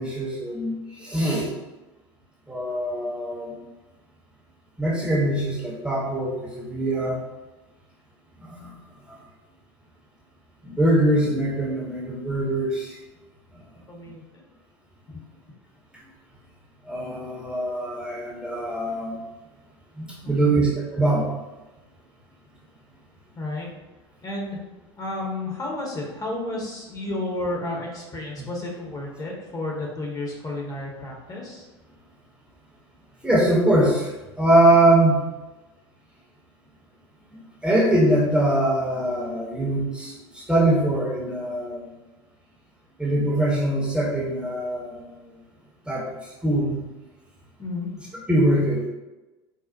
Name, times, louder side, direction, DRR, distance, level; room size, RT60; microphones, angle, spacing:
voice 1, 0.0-1.5 2.5-3.6 4.8-7.2 8.4-8.7 9.1-9.2 10.6-13.0 16.9-19.2 20.0-21.3 33.2-35.2 37.3-41.9 43.0-45.2 45.9-46.8 48.3-48.9, right 1 dB, 5° right, -5 dB, 0.7 m, -23 dB
voice 2, 13.9-14.5 15.1-15.2 20.2-20.5 23.4-23.7 24.2-24.6 25.0-31.7 47.6-47.9, left 2 dB, 25° left, -2 dB, 0.8 m, -32 dB
4.2 x 2.0 x 2.5 m, 1.1 s
figure-of-eight pair, 80°, 14 cm